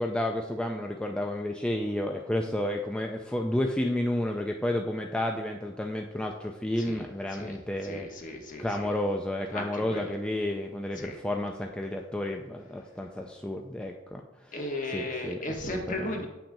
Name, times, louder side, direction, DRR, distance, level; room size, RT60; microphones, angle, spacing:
voice 1, 0.0-8.1 8.6-14.2 14.9-15.4 15.7-16.3, left 1 dB, 5° left, 2 dB, 0.3 m, -31 dB
voice 2, 7.3-8.9 9.5-10.1 11.0-11.2 14.5-16.3, left 1 dB, 40° left, 2 dB, 1.1 m, -36 dB
8.6 x 5.8 x 2.7 m, 1.1 s
head